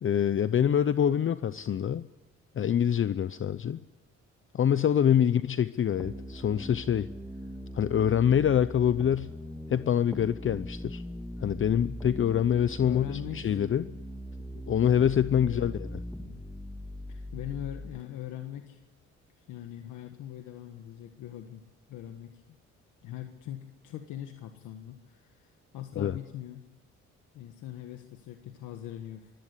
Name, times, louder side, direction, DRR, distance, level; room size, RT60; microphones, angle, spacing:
voice 1, 0.0-2.0 2.5-3.8 4.5-7.1 7.7-9.3 9.7-11.0 11.4-13.9 14.7-15.9 26.0-26.2, left 9 dB, 45° left, 14 dB, 0.7 m, -25 dB
voice 2, 5.1-5.4 12.8-13.7 15.4-15.8 16.2-16.4 17.1-18.8 19.4-21.6 21.9-22.6 23.0-26.6 27.3-29.3, left 11 dB, 90° left, 6 dB, 1.5 m, -41 dB
sound 1, 6.0-18.0, equal, 5° left, 2.0 m, -40 dB
23.0 x 16.5 x 8.3 m, 1.0 s
cardioid pair, 90°, 30 cm